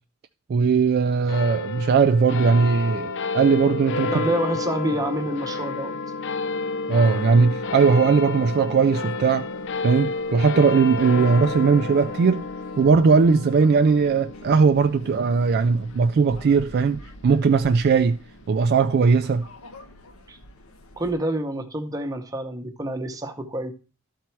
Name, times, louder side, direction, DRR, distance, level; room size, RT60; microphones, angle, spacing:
voice 1, 0.5-4.2 6.9-9.5 9.8-12.5 12.8-18.2 18.5-19.5, right 5 dB, 50° right, 0.3 m, -19 dB
sound 1, 1.3-18.0, left 3 dB, 60° left, 0.5 m, -31 dB
voice 2, 4.1-6.0 20.3-20.4 21.0-23.7, right 1 dB, 15° right, 0.9 m, -28 dB
sound 2, 6.9-21.1, left 1 dB, 80° left, 1.0 m, -48 dB
12.5 x 4.3 x 4.5 m
head